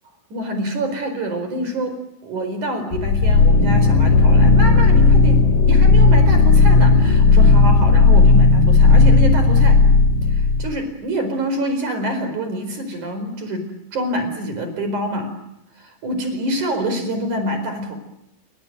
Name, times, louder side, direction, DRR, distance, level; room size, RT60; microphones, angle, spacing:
voice 1, 0.3-2.0 2.2-9.8 10.2-13.7 13.9-15.3 16.0-18.0, right 1 dB, 45° right, 8 dB, 5.8 m, -26 dB
sound 1, 2.9-10.8, left 3 dB, 60° left, 3.3 m, -13 dB
28.5 x 25.5 x 8.0 m, 0.81 s
omnidirectional pair, 4.8 m